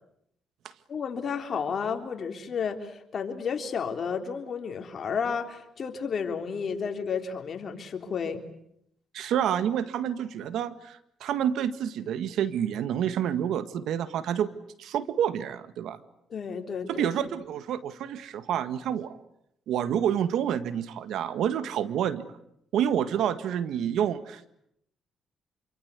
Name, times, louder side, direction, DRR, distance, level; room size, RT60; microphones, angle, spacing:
voice 1, 0.9-8.4 16.3-17.1, left 6 dB, 50° left, 5 dB, 3.6 m, -32 dB
voice 2, 9.1-14.5 14.8-16.0 16.9-19.2 19.7-22.3 22.7-24.5, right 9 dB, 80° right, 13 dB, 1.7 m, -28 dB
27.0 x 25.0 x 8.3 m, 0.76 s
cardioid pair, 90°, 0 cm